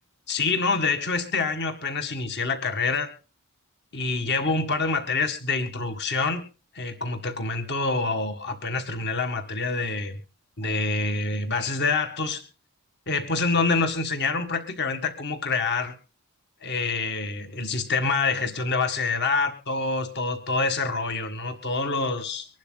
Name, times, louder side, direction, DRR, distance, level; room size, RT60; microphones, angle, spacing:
voice 1, 0.3-3.1 3.9-6.4 6.7-10.1 10.6-12.4 13.1-15.9 16.6-22.5, left 3 dB, 50° left, 6 dB, 1.9 m, -26 dB
24.5 x 11.5 x 2.3 m, 0.33 s
head